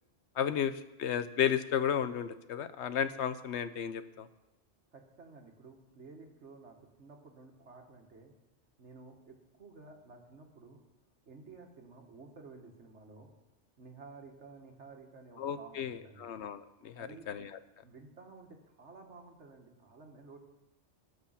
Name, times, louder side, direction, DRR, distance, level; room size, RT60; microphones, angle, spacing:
voice 1, 0.4-0.7 1.0-4.3 15.4-17.5, left 8 dB, 75° left, 12 dB, 1.0 m, -33 dB
voice 2, 4.9-8.3 8.8-10.8 11.3-13.3 13.8-16.3 17.0-17.3 17.8-20.4, right 3 dB, 80° right, 3 dB, 2.0 m, -53 dB
19.0 x 6.8 x 5.7 m, 0.99 s
omnidirectional pair, 1.2 m